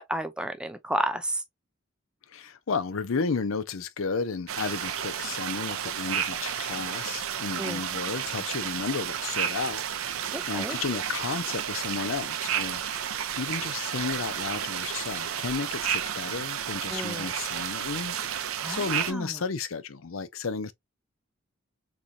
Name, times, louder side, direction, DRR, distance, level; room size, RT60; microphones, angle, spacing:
voice 1, 0.0-1.4 7.6-7.8 10.3-10.8 16.9-17.3 18.6-19.4, right 1 dB, 5° right, 0.4 m, -32 dB
voice 2, 2.3-18.1 18.6-20.7, left 5 dB, 75° left, 0.5 m, -33 dB
sound 1, 4.5-19.1, right 9 dB, 80° right, 0.6 m, -32 dB
3.8 x 3.0 x 2.5 m
head